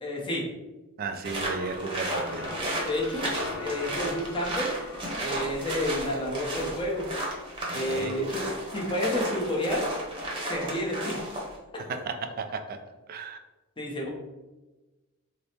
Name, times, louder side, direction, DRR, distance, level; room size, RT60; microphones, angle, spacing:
voice 1, 0.0-0.5 2.8-4.8 5.2-7.1 7.7-9.9 10.5-11.3 11.7-11.8 13.8-14.1, left 1 dB, 25° left, -2 dB, 0.7 m, -30 dB
voice 2, 1.0-2.5 7.7-8.1 11.9-12.8 13.1-13.4, right 4 dB, 45° right, 7 dB, 0.3 m, -34 dB
sound 1, 1.2-11.6, right 1 dB, 25° right, 0.8 m, -33 dB
sound 2, 1.6-5.3 6.3-6.4 7.0-7.1 8.9-11.4, left 2 dB, 65° left, 0.5 m, -43 dB
3.3 x 2.0 x 4.1 m, 1.1 s
head